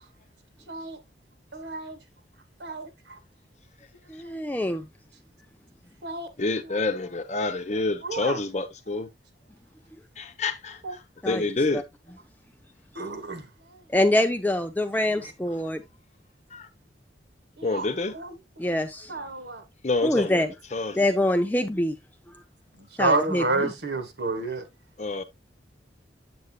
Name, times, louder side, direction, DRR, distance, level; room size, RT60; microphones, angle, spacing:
voice 1, 0.7-1.0 1.5-2.0 2.6-3.2 6.0-6.8 8.0-8.4 10.8-10.9 12.9-13.5 13.7-13.8 15.2-15.3 17.6-17.9 18.1-18.4 19.1-19.6 22.8-24.6, right 3 dB, 65° right, 1.5 m, -30 dB
voice 2, 4.1-4.8 11.2-11.4 13.9-15.8 18.6-19.1 20.0-20.5 20.9-22.0 23.0-23.7, left 1 dB, 10° left, 0.4 m, -25 dB
voice 3, 6.4-9.1 10.2-11.8 16.5-16.7 17.6-18.1 19.8-20.4 20.7-21.1 25.0-25.2, left 3 dB, 35° left, 0.9 m, -28 dB
8.1 x 7.8 x 2.2 m
head